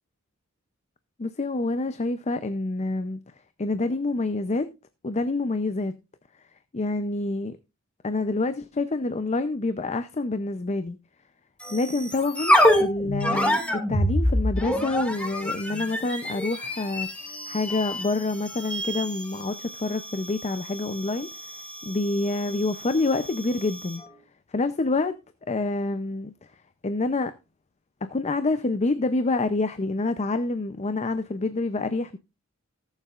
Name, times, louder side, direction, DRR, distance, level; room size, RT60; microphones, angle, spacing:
voice 1, 1.2-3.2 3.6-4.7 5.0-5.9 6.7-7.6 8.0-11.0 11.7-17.1 17.5-21.3 21.8-24.0 24.5-25.2 25.5-26.3 26.8-27.3 28.0-32.2, left 2 dB, 30° left, 0.6 m, -27 dB
sound 1, 11.6-24.1, equal, 5° left, 2.1 m, -27 dB
19.5 x 7.3 x 2.5 m
head